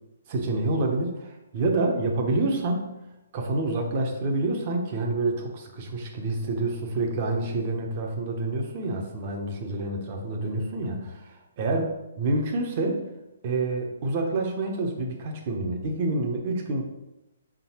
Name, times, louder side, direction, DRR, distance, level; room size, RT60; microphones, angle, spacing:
voice 1, 0.3-3.0 3.3-11.9 12.2-13.1 13.4-16.8, right 2 dB, 35° right, 2 dB, 1.1 m, -28 dB
5.5 x 3.9 x 4.5 m, 0.95 s
hypercardioid pair, 160°, 0 cm